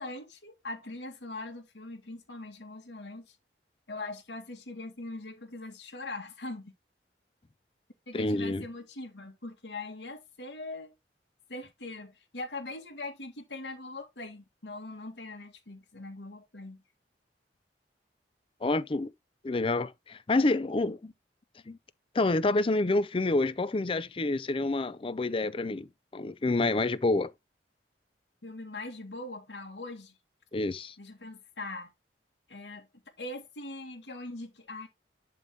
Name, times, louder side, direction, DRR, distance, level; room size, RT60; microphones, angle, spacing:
voice 1, 0.0-3.4 3.9-6.7 8.1-10.9 11.5-16.8 28.4-30.2 31.0-31.9 32.5-32.9 33.2-34.9, left 2 dB, 75° left, 1.9 m, -41 dB
voice 2, 8.1-8.6 18.6-19.1 19.4-21.1 21.7-21.8 22.1-27.3 30.5-31.0, left 2 dB, 30° left, 0.5 m, -28 dB
11.0 x 3.8 x 3.6 m
head